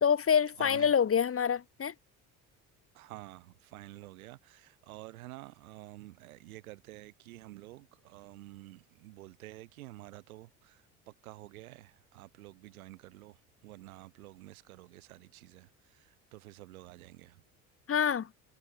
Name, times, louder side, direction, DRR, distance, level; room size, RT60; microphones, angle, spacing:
voice 1, 0.0-1.9 17.9-18.3, left 7 dB, 30° left, 1.6 m, -26 dB
voice 2, 0.6-0.9 2.9-17.4, right 18 dB, 75° right, 4.1 m, -50 dB
hypercardioid pair, 60°, 42 cm